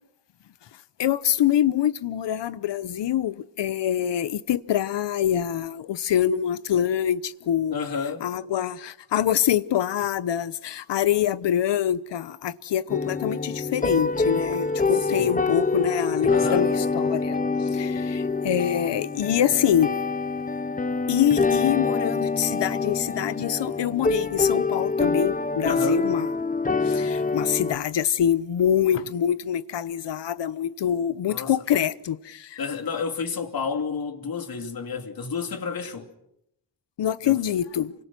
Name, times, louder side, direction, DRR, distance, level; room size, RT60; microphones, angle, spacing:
voice 1, 1.0-7.8 8.2-17.4 17.7-20.0 21.1-26.3 26.8-32.6 37.0-37.9, left 10 dB, 90° left, 1.0 m, -25 dB
voice 2, 7.7-8.3 14.9-15.5 16.3-16.7 25.6-26.0 31.3-31.6 32.6-36.1 37.2-37.4, left 5 dB, 55° left, 2.9 m, -30 dB
sound 1, 12.9-27.8, left 4 dB, 20° left, 0.9 m, -25 dB
28.5 x 25.0 x 6.1 m
wide cardioid pair, 140°, 41 cm